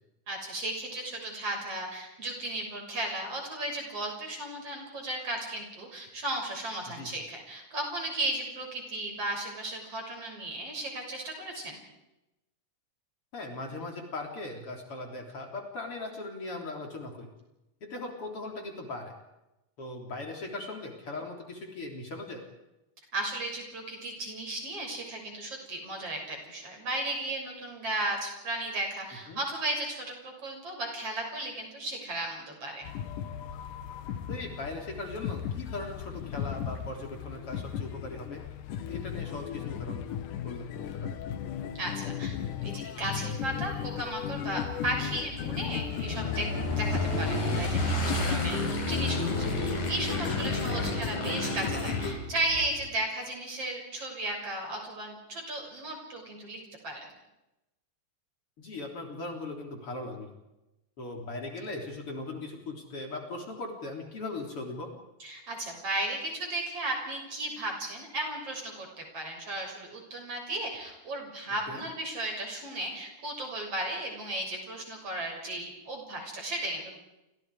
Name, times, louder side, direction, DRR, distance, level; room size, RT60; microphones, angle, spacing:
voice 1, 0.3-11.8 23.1-32.9 41.7-42.4 42.6-46.5 46.8-57.1 65.2-77.0, right 1 dB, 50° right, 1 dB, 7.8 m, -35 dB
voice 2, 13.3-17.3 17.8-19.1 19.8-22.4 29.3-29.4 34.3-38.4 38.9-40.1 40.4-40.7 40.9-41.2 50.7-51.0 58.6-60.3 61.0-64.9 71.7-71.8, left 2 dB, 45° left, 2 dB, 4.4 m, -39 dB
sound 1, 32.8-52.1, left 9 dB, 85° left, 2.8 m, -35 dB
Motorcycle / Engine, 43.2-52.9, left 1 dB, 65° left, 6.5 m, -32 dB
29.0 x 27.0 x 4.9 m, 0.95 s
omnidirectional pair, 3.5 m